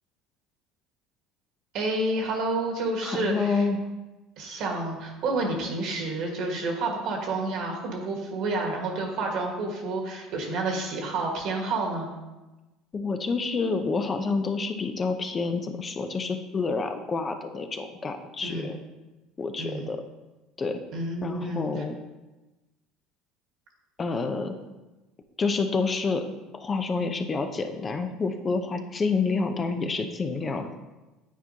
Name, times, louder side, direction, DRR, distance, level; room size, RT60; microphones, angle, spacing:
voice 1, 1.7-3.7 4.4-12.1 18.4-18.7 19.6-19.9 20.9-21.8, right 2 dB, 65° right, 1 dB, 1.6 m, -29 dB
voice 2, 3.0-3.8 12.9-18.8 19.4-20.0 20.6-20.8 21.2-22.0 24.0-24.5 25.4-26.2 26.5-30.7, left 4 dB, 30° left, 6 dB, 0.6 m, -28 dB
9.2 x 4.4 x 2.8 m, 1.1 s
supercardioid pair, 95°, 0 cm